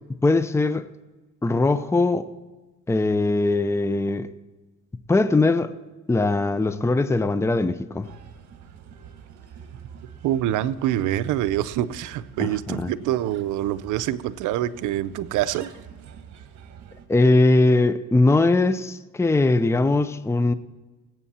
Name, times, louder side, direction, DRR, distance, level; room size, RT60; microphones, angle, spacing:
voice 1, 0.2-0.9 1.4-2.3 2.9-4.3 5.1-5.7 6.1-8.1 12.4-12.9 17.1-20.5, left 2 dB, 10° left, 0.6 m, -20 dB
Bird, 8.0-17.1, right 7 dB, 65° right, 1.4 m, -46 dB
voice 2, 10.2-15.7, right 12 dB, 90° right, 0.6 m, -25 dB
18.5 x 8.2 x 4.3 m
cardioid pair, 90°, 30 cm